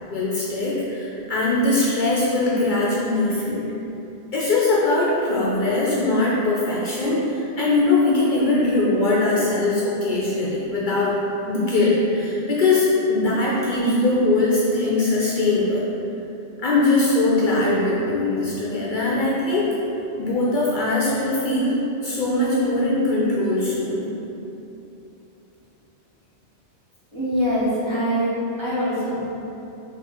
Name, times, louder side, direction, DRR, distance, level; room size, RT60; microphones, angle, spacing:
voice 1, 0.1-3.7 4.3-11.1 11.5-15.8 16.6-19.7 20.2-24.1, left 2 dB, 55° left, -6 dB, 0.6 m, -21 dB
voice 2, 27.1-29.3, equal, 30° right, -10 dB, 0.8 m, -23 dB
3.7 x 2.6 x 4.2 m, 3.0 s
omnidirectional pair, 1.1 m